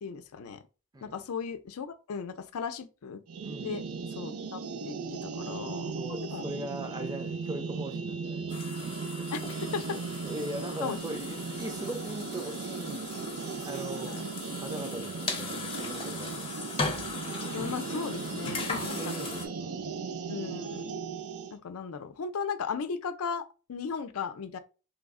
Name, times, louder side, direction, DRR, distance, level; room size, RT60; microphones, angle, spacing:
voice 1, 0.0-0.6 1.0-3.2 3.6-3.8 4.2-4.6 4.8-5.0 5.2-6.4 9.3-9.4 9.7-10.0 10.8-11.2 14.1-14.2 17.5-19.0 20.3-21.0 21.5-24.6, left 6 dB, 85° left, 0.4 m, -36 dB
sound 1, 3.3-21.5, right 4 dB, 80° right, 0.4 m, -37 dB
voice 2, 3.4-3.8 5.9-8.6 9.2-9.3 9.8-13.1 13.6-14.2 14.6-16.5 17.8-18.2 18.7-19.9, right 2 dB, 20° right, 0.5 m, -40 dB
sound 2, 4.2-16.0, right 7 dB, 55° right, 0.8 m, -60 dB
sound 3, 8.5-19.5, left 4 dB, 25° left, 0.6 m, -39 dB
3.1 x 2.0 x 3.5 m
head